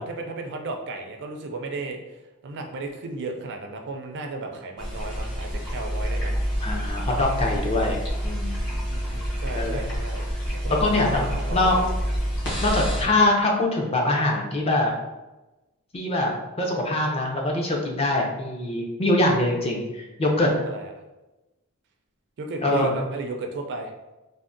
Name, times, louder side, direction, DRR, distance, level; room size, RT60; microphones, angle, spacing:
voice 1, 0.0-6.4 8.6-10.3 10.6-11.9 20.6-20.9 22.4-23.9, right 3 dB, 55° right, 4 dB, 0.4 m, -34 dB
sound 1, 4.8-13.1, equal, 55° left, 0.9 m, -28 dB
voice 2, 6.6-8.6 9.5-9.8 10.7-11.8 12.6-14.9 15.9-20.5 22.6-22.9, left 2 dB, 25° left, 0 dB, 0.5 m, -23 dB
3.4 x 2.0 x 2.5 m, 1.1 s
head